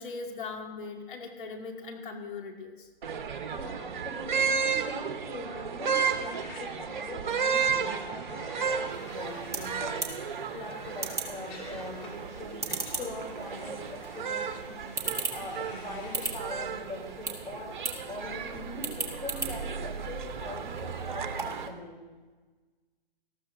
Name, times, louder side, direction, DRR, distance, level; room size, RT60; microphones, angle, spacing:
voice 1, 0.0-2.9, left 4 dB, 60° left, 2 dB, 2.2 m, -39 dB
sound 1, 3.0-21.7, right 6 dB, 55° right, 1.0 m, -34 dB
voice 2, 3.3-10.2 10.5-22.0, left 1 dB, 15° left, -3 dB, 3.5 m, -42 dB
sound 2, 6.0-16.3, left 3 dB, 35° left, 3.1 m, -51 dB
sound 3, 8.9-21.7, right 3 dB, 10° right, 1.2 m, -39 dB
19.0 x 13.5 x 2.7 m, 1.3 s
hypercardioid pair, 135°, 29 cm